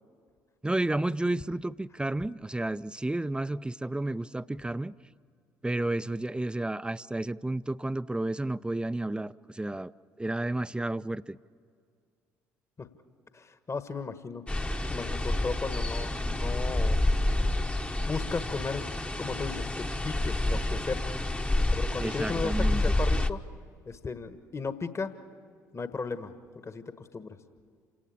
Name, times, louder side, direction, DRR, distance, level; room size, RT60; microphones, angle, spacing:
voice 1, 0.6-4.9 5.6-9.9 10.2-11.4 22.0-22.8, right 2 dB, 10° right, 0.5 m, -31 dB
voice 2, 13.3-14.4 14.9-17.0 18.1-18.9 19.2-21.1 21.7-23.4 23.8-25.1 25.7-26.3 26.6-27.4, left 4 dB, 30° left, 1.5 m, -35 dB
sound 1, 14.5-23.3, left 1 dB, 15° left, 1.1 m, -28 dB
28.0 x 18.0 x 8.6 m
figure-of-eight pair, 50°, 9 cm